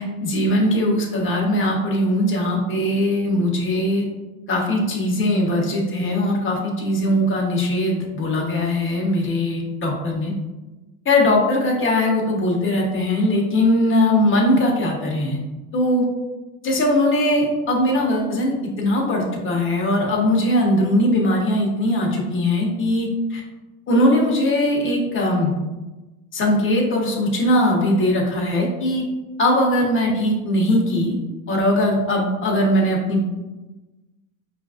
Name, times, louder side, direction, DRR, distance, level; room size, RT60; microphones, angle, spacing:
voice 1, 0.0-4.0 4.5-10.3 11.0-15.4 15.7-16.0 16.6-23.4 23.9-25.6 26.3-29.0 29.4-31.1 31.5-33.3, left 1 dB, 30° left, -1 dB, 1.0 m, -20 dB
5.0 x 2.5 x 2.4 m, 1.1 s
hypercardioid pair, 80°, 41 cm